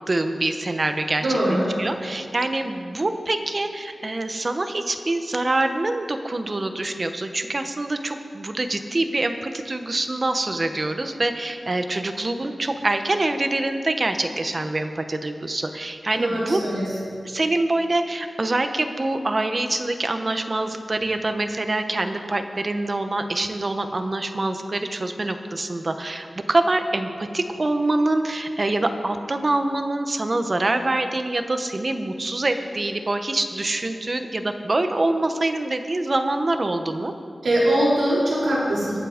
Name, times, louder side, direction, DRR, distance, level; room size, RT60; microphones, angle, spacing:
voice 1, 0.1-1.4 1.8-16.6 17.2-37.1, right 2 dB, 40° right, 7 dB, 1.0 m, -25 dB
voice 2, 1.2-1.7 16.2-16.9 37.4-39.0, right 1 dB, 85° right, -8 dB, 4.0 m, -22 dB
22.0 x 7.6 x 5.1 m, 2.4 s
wide cardioid pair, 100°, 0 cm